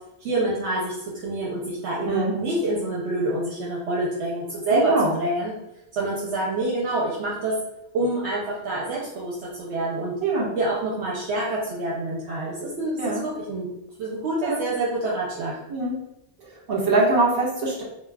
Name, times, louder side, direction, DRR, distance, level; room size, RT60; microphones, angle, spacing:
voice 1, 0.2-0.9 1.2-5.5 5.9-7.5 7.9-10.1 10.6-13.7 14.0-15.5, right 2 dB, 75° right, -4 dB, 0.9 m, -27 dB
voice 2, 2.0-2.3 4.7-5.1 10.2-10.5 13.0-13.2 14.4-14.6 15.7-16.0 16.4-17.8, right 3 dB, 55° right, -4 dB, 1.1 m, -23 dB
2.3 x 2.2 x 3.3 m, 0.82 s
omnidirectional pair, 1.2 m